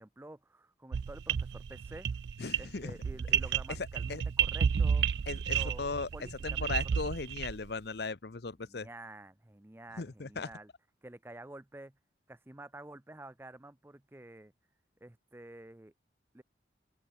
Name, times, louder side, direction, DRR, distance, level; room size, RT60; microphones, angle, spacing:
voice 1, 0.0-2.1 2.6-5.2 5.5-6.7 8.6-10.7 11.0-11.9 12.3-14.5 15.0-15.9 16.3-16.4, right 1 dB, 15° right, 0.5 m, -49 dB
sound 1, 0.9-7.7, right 7 dB, 65° right, 0.3 m, -31 dB
voice 2, 2.4-2.9 3.8-4.2 5.3-6.1 6.4-8.9 10.0-10.5, left 4 dB, 60° left, 0.8 m, -37 dB
open air
head